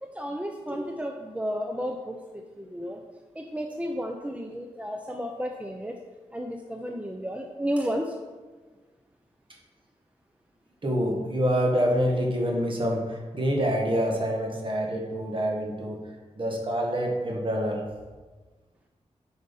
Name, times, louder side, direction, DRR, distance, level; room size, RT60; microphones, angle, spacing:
voice 1, 0.0-3.0 3.3-6.0 6.3-8.1, equal, 10° right, 3 dB, 0.7 m, -32 dB
voice 2, 10.8-16.0 16.4-17.8, equal, 40° right, -1 dB, 1.9 m, -26 dB
8.1 x 5.1 x 5.5 m, 1.3 s
wide cardioid pair, 75°, 13 cm